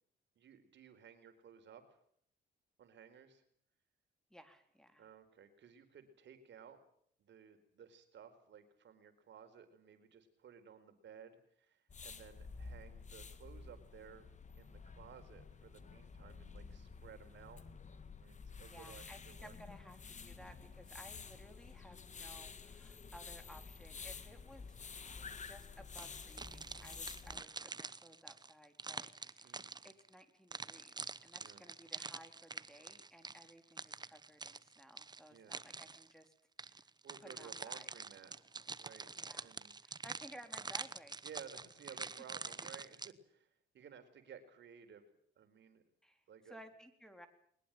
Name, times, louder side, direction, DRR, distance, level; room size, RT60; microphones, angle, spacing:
voice 1, 0.4-2.0 2.8-3.4 5.0-6.8 7.2-14.3 14.6-17.6 18.2-19.5 26.9-27.2 29.4-29.8 31.4-31.6 35.3-35.6 37.0-38.3 38.8-39.1 39.4-39.7 41.2-45.0 45.4-45.8 46.3-46.6, right 7 dB, 65° right, 7 dB, 4.5 m, -56 dB
voice 2, 4.3-5.1 18.6-24.8 25.3-36.3 36.6-36.9 37.2-37.9 39.2-39.5 39.8-41.2 41.9-42.0 46.0-47.3, equal, 5° left, 7 dB, 3.9 m, -58 dB
sound 1, 11.9-27.4, left 5 dB, 35° left, 2.0 m, -51 dB
sound 2, 26.0-30.1 30.5-36.1 36.6-43.1, right 4 dB, 20° right, 1.0 m, -46 dB
22.0 x 20.0 x 9.1 m, 0.64 s
cardioid pair, 90°, 20 cm